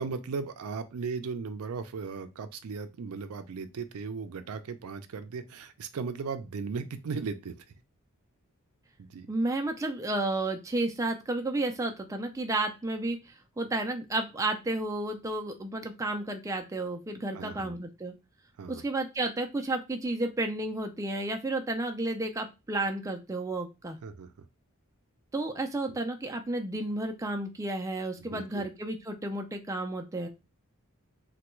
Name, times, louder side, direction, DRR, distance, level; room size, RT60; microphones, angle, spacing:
voice 1, 0.0-7.6 9.0-9.3 17.3-17.8 18.6-18.8 24.0-24.3 25.9-26.0 28.2-28.6, right 5 dB, 85° right, 9 dB, 0.4 m, -37 dB
voice 2, 9.3-18.1 18.7-24.0 25.3-30.3, right 2 dB, 15° right, 4 dB, 0.4 m, -32 dB
3.3 x 2.2 x 3.0 m, 0.26 s
head